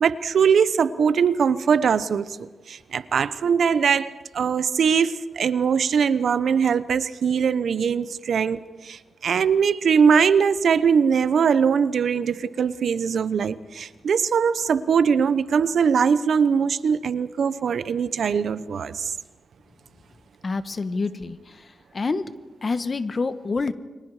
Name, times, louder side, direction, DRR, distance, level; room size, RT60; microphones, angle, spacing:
voice 1, 0.0-19.1, right 6 dB, 75° right, 14 dB, 0.9 m, -21 dB
voice 2, 20.4-21.4 21.9-22.2 22.6-23.7, left 4 dB, 40° left, 11 dB, 1.4 m, -26 dB
29.5 x 24.5 x 5.0 m, 1.2 s
wide cardioid pair, 100°, 0 cm